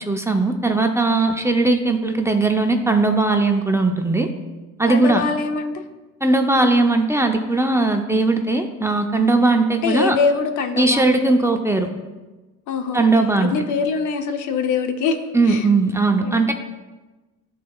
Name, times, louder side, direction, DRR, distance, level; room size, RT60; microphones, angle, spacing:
voice 1, 0.1-4.3 4.8-5.2 6.2-10.2 10.8-11.9 12.9-13.5 15.3-16.5, right 3 dB, 10° right, 4 dB, 0.6 m, -18 dB
voice 2, 4.9-5.7 9.8-11.3 12.7-15.7 16.2-16.4, left 5 dB, 75° left, 6 dB, 0.7 m, -24 dB
11.5 x 4.2 x 2.3 m, 1.2 s
cardioid pair, 90°, 30 cm